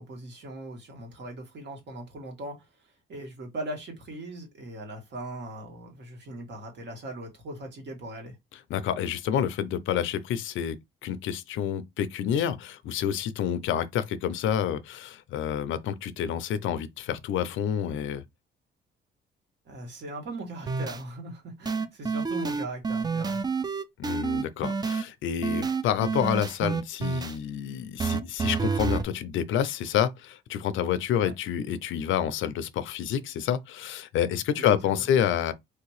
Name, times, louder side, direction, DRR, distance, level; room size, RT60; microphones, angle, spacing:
voice 1, 0.0-2.7 3.1-8.4 19.6-23.4 31.2-31.3 34.5-34.9, right 1 dB, 60° right, 1.5 m, -39 dB
voice 2, 8.7-18.2 24.0-35.5, left 9 dB, 80° left, 0.5 m, -28 dB
sound 1, 20.7-21.0 21.7-25.0 25.4-27.4 28.0-29.0, right 5 dB, 20° right, 0.4 m, -28 dB
3.3 x 2.8 x 3.0 m
cardioid pair, 90°, 20 cm